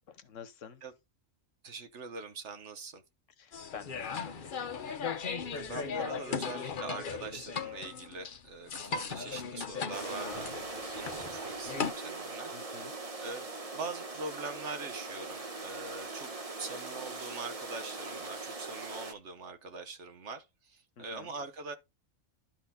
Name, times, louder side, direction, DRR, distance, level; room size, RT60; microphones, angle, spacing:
voice 1, 0.1-0.8 3.4-5.1 12.5-13.0 21.0-21.3, left 7 dB, 70° left, 1.3 m, -49 dB
voice 2, 1.6-3.0 5.5-10.5 10.9-12.8 13.2-13.5 13.7-16.3 16.6-21.8, right 4 dB, 60° right, 1.4 m, -43 dB
sound 1, 3.5-11.9, left 6 dB, 45° left, 0.8 m, -37 dB
sound 2, 9.9-19.1, right 3 dB, 30° right, 1.1 m, -41 dB
12.0 x 4.5 x 3.6 m
omnidirectional pair, 1.4 m